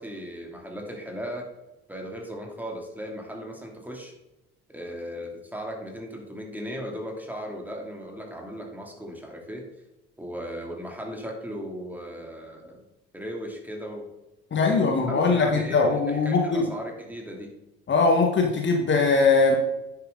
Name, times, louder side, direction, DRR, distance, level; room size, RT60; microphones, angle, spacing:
voice 1, 0.0-1.5 1.9-4.1 4.7-9.7 10.2-12.8 13.1-14.1 14.7-17.5, equal, 5° right, 0 dB, 2.8 m, -37 dB
voice 2, 14.5-16.7 17.9-19.6, left 4 dB, 35° left, 1 dB, 1.6 m, -21 dB
10.0 x 6.5 x 3.9 m, 0.95 s
figure-of-eight pair, 50°, 31 cm